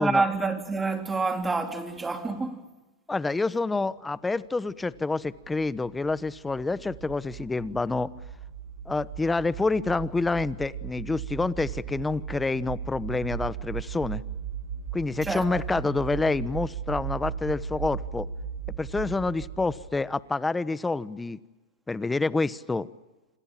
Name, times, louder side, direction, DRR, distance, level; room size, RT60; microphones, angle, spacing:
voice 1, 0.0-2.6 15.2-15.5, right 3 dB, 10° right, 3.7 m, -27 dB
voice 2, 3.1-8.1 8.9-14.2 14.9-18.3 18.8-21.4 21.9-22.9, left 3 dB, 10° left, 1.1 m, -28 dB
sound 1, 4.8-20.1, right 8 dB, 75° right, 6.9 m, -37 dB
28.5 x 26.5 x 7.5 m
hypercardioid pair, 115°, 0 cm